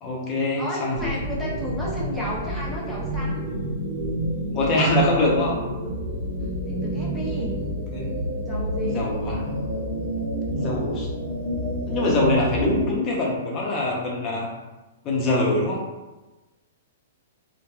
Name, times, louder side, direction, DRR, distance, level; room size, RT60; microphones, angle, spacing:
voice 1, 0.0-1.1 4.5-5.6 7.9-8.1 8.9-9.4 10.5-11.1 11.9-14.5 15.0-15.8, left 1 dB, 30° left, -3 dB, 0.7 m, -23 dB
voice 2, 0.6-3.4 6.7-7.5 8.5-9.1, left 1 dB, 5° right, -6 dB, 0.6 m, -33 dB
sound 1, 0.9-12.9, equal, 65° right, 0.6 m, -29 dB
2.8 x 2.2 x 2.3 m, 1.1 s
hypercardioid pair, 125°, 0 cm